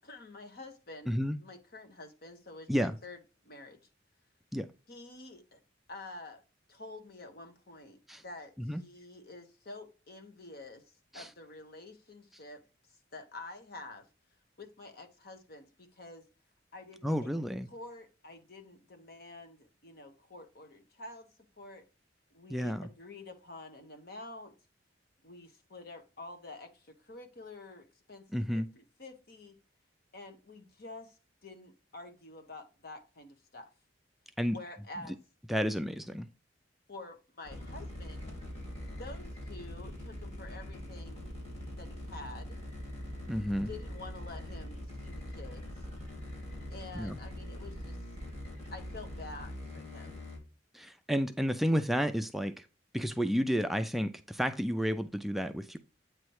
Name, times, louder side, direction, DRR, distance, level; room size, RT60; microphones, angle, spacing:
voice 1, 0.0-3.8 4.9-5.6 5.9-6.4 6.7-10.8 11.1-12.6 13.1-14.1 14.6-16.3 16.7-21.3 21.6-21.8 22.3-24.5 25.2-28.2 28.5-29.6 30.1-33.7 34.5-35.2 36.9-38.3 38.9-41.4 41.8-42.6 43.7-44.8 45.0-45.8 46.7-48.0 48.7-50.2, left 2 dB, 55° left, 1.3 m, -48 dB
voice 2, 1.1-1.4 2.7-3.0 4.5-4.7 8.1-8.2 8.6-8.8 11.1-11.3 17.0-17.7 22.5-22.9 28.3-28.7 34.4-34.6 35.5-36.3 43.3-43.7 46.9-47.2 50.7-52.7 52.9-55.8, equal, ahead, 0.3 m, -31 dB
sound 1, 37.4-50.4, left 1 dB, 35° left, 2.9 m, -43 dB
8.7 x 3.1 x 4.7 m
head